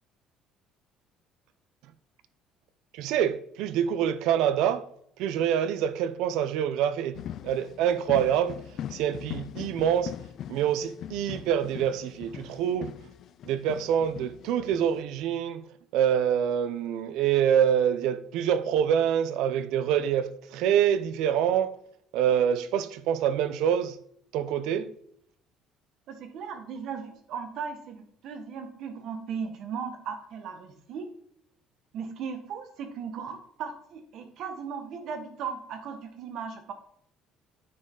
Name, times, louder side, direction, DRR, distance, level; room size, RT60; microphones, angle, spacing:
voice 1, 2.9-4.9 5.2-7.2 7.4-10.2 10.5-13.0 13.4-15.6 15.9-21.7 22.1-24.0 24.3-24.9, right 9 dB, 70° right, 0.6 m, -26 dB
sound 1, 7.1-15.0, left 10 dB, 45° left, 0.3 m, -41 dB
voice 2, 26.1-31.1 31.9-36.7, right 6 dB, 55° right, 1.4 m, -37 dB
9.4 x 5.3 x 3.9 m
cardioid pair, 165°, 0 cm